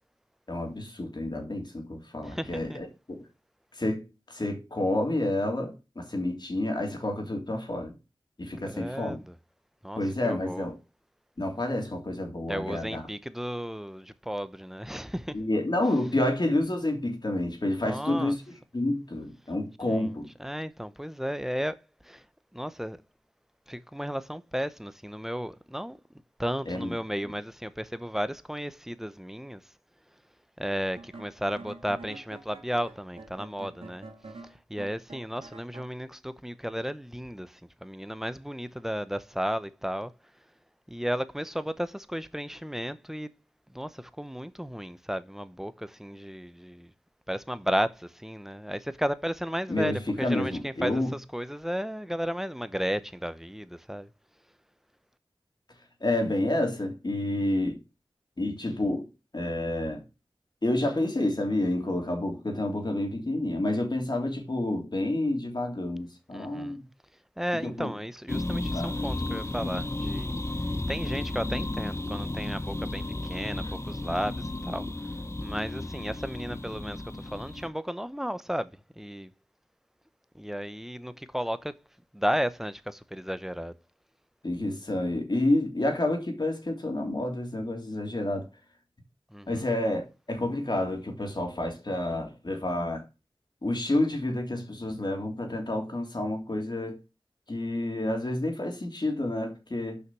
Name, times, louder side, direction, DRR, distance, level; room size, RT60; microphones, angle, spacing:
voice 1, 0.5-3.3 3.7-4.0 4.3-7.9 8.4-9.2 9.9-10.7 11.4-13.0 15.3-18.4 18.7-20.3 26.7-26.9 49.7-51.1 56.0-57.8 58.4-59.1 59.3-60.0 60.6-66.8 67.6-68.0 68.7-69.0 73.6-73.7 84.4-88.5 89.5-93.0 93.6-97.0 97.5-100.0, left 1 dB, 50° left, 3.1 m, -29 dB
voice 2, 2.2-2.8 8.7-9.3 9.8-10.7 12.5-15.4 17.8-18.4 19.8-20.1 20.4-22.2 22.5-23.0 23.7-26.0 26.4-29.6 30.6-34.1 34.4-40.1 40.9-43.3 43.7-46.9 47.3-54.1 66.3-66.8 67.4-70.3 70.9-74.9 75.4-79.3 80.3-81.7 82.1-83.7 89.3-89.7, equal, 5° right, 0.8 m, -34 dB
sound 1, 31.0-35.9, right 3 dB, 75° right, 1.9 m, -46 dB
sound 2, 68.3-77.7, left 2 dB, 30° left, 1.0 m, -33 dB
6.4 x 5.7 x 6.1 m
wide cardioid pair, 45°, 10 cm